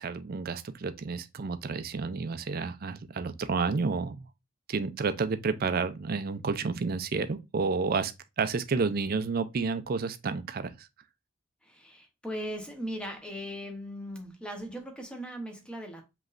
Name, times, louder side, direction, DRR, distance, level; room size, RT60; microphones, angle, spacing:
voice 1, 0.0-4.3 4.7-10.9, right 4 dB, 50° right, 0.4 m, -30 dB
voice 2, 11.6-16.0, equal, 5° left, 0.9 m, -38 dB
5.0 x 3.1 x 2.5 m
head